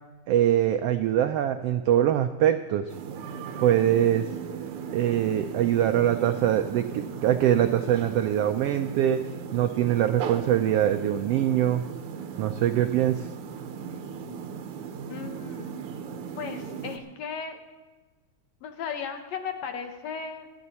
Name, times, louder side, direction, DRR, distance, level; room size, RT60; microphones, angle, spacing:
voice 1, 0.3-2.9 3.6-4.3 4.9-9.2 9.5-11.8 12.4-13.3, right 11 dB, 85° right, 8 dB, 1.3 m, -23 dB
sound 1, 2.9-17.0, right 6 dB, 65° right, 1.5 m, -37 dB
voice 2, 15.1-15.8 16.4-17.6 18.6-20.5, left 6 dB, 70° left, 5 dB, 2.1 m, -36 dB
27.0 x 9.6 x 4.1 m, 1.2 s
omnidirectional pair, 3.4 m